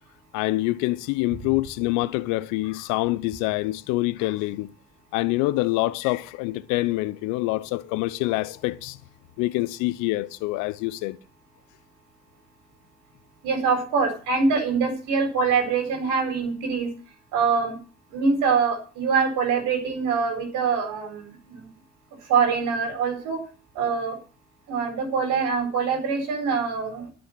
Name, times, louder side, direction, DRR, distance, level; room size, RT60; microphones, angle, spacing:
voice 1, 0.3-4.7 5.1-9.0 9.4-11.2, left 19 dB, 70° left, 0.7 m, -26 dB
voice 2, 13.4-16.9 17.3-17.8 18.1-21.7 22.2-23.4 23.7-24.2 24.7-27.1, right 5 dB, 70° right, 4.3 m, -24 dB
10.5 x 6.3 x 8.8 m
hypercardioid pair, 55°, 32 cm